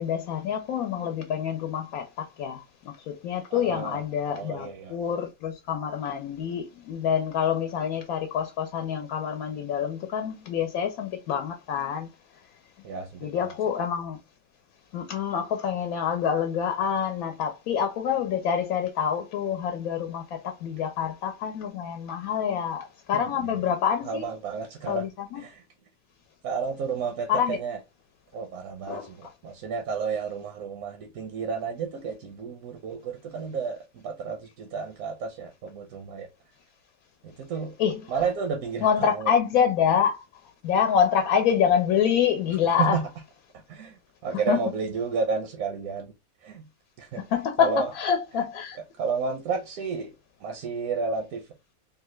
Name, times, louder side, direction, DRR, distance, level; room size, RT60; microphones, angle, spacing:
voice 1, 0.0-2.6 3.1-12.1 13.2-14.2 14.9-24.2 24.9-25.4 27.3-27.6 28.9-29.3 37.8-38.0 38.8-40.2 40.6-43.0 44.5-44.6 47.3-48.8, left 8 dB, 85° left, 1.0 m, -26 dB
voice 2, 3.5-5.0 12.8-13.5 23.1-23.7 24.0-25.1 25.3-25.6 26.4-27.8 28.3-36.3 37.2-37.8 38.1-39.3 42.8-43.0 43.7-46.1 46.4-46.7 47.0-47.2 47.6-47.9 49.0-50.1 50.4-51.5, right 5 dB, 80° right, 1.0 m, -31 dB
3.2 x 2.3 x 3.0 m
omnidirectional pair, 1.5 m